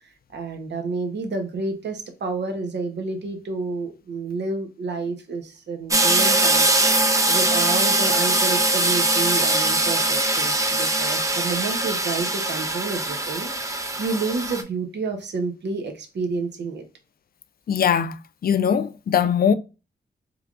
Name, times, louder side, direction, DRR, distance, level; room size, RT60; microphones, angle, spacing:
voice 1, 0.3-16.8, right 4 dB, 80° right, 0.8 m, -30 dB
sound 1, 5.9-14.6, right 2 dB, 20° right, 0.6 m, -21 dB
voice 2, 17.7-19.5, left 8 dB, 60° left, 0.4 m, -21 dB
3.3 x 2.4 x 3.5 m
cardioid pair, 80°, 18 cm